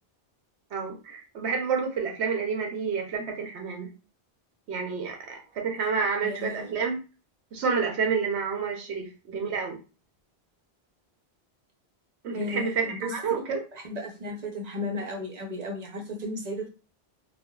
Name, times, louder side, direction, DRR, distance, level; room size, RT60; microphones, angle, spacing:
voice 1, 0.7-3.9 4.7-7.0 7.5-9.8 12.2-12.8 13.1-13.6, right 5 dB, 85° right, 2 dB, 1.0 m, -29 dB
voice 2, 6.2-6.8 8.9-9.0 12.3-13.4 13.7-16.7, left 1 dB, 45° right, 2 dB, 0.6 m, -35 dB
3.4 x 2.1 x 2.3 m, 0.32 s
omnidirectional pair, 1.1 m